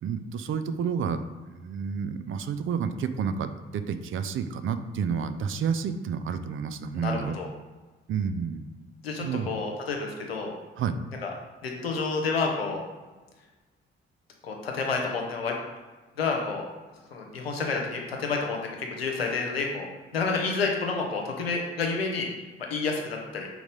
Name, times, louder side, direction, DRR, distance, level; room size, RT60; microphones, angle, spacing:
voice 1, 0.0-1.3 1.5-7.4 8.1-8.7 9.2-9.5 10.8-10.9, right 6 dB, 45° right, 10 dB, 0.5 m, -30 dB
voice 2, 6.9-7.5 9.0-10.5 11.2-11.3 11.6-12.8 14.4-15.5 16.2-16.6 17.1-19.9 20.1-22.3 22.7-23.5, left 4 dB, 85° left, 1 dB, 0.7 m, -29 dB
4.6 x 4.1 x 5.1 m, 1.3 s
figure-of-eight pair, 40°, 29 cm